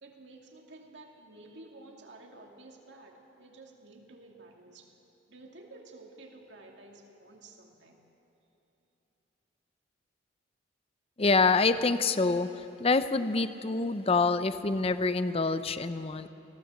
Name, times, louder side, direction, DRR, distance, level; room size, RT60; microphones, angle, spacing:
voice 1, 0.0-4.9 5.3-8.0, right 2 dB, 65° right, 1 dB, 2.4 m, -52 dB
voice 2, 11.2-16.3, left 3 dB, 30° left, 12 dB, 0.6 m, -26 dB
20.5 x 16.5 x 7.7 m, 3.0 s
head